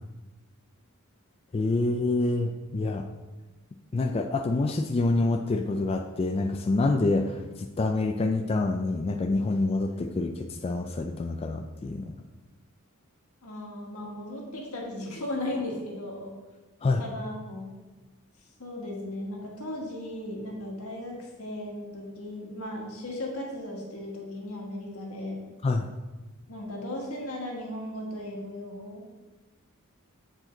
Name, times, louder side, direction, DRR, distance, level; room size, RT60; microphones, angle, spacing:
voice 1, 1.5-3.0 3.9-12.1 16.8-17.0 25.6-25.9, left 2 dB, 25° left, 4 dB, 0.3 m, -27 dB
voice 2, 13.4-16.3 17.0-17.7 18.6-25.4 26.5-29.0, left 1 dB, 75° left, -1 dB, 1.6 m, -36 dB
7.6 x 4.9 x 3.8 m, 1.2 s
head